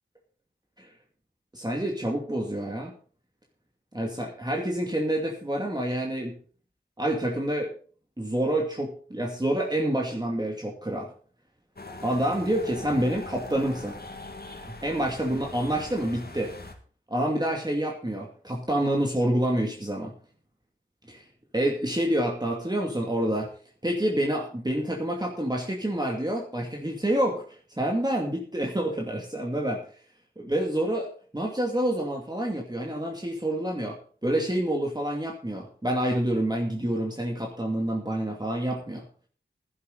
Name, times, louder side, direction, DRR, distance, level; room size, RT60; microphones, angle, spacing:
voice 1, 1.5-2.9 3.9-6.4 7.0-7.7 8.2-11.1 12.0-14.0 14.7-16.5 17.1-20.1 21.1-21.3 21.5-23.5 23.8-29.8 30.4-31.1 31.3-39.0, right 1 dB, 20° right, 0 dB, 2.5 m, -28 dB
sound 1, 11.8-16.7, left 2 dB, 50° left, 2.3 m, -41 dB
15.0 x 11.5 x 4.1 m, 0.42 s
wide cardioid pair, 65°, 20 cm